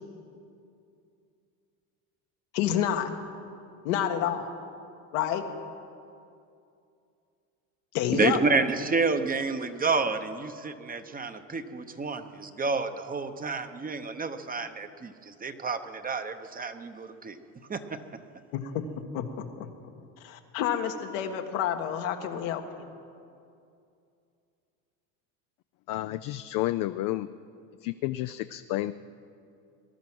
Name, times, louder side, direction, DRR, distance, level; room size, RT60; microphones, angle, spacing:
voice 1, 2.5-3.1 3.8-4.5 5.1-5.4 7.9-8.4 18.5-18.8 19.1-19.7 20.2-22.9, left 9 dB, 80° left, 5 dB, 1.6 m, -29 dB
voice 2, 8.1-17.4 17.7-18.0, right 4 dB, 20° right, 9 dB, 0.9 m, -29 dB
voice 3, 25.9-27.3 27.8-28.9, left 16 dB, 55° left, 11 dB, 0.5 m, -30 dB
20.0 x 11.5 x 6.2 m, 2.5 s
supercardioid pair, 100°, 39 cm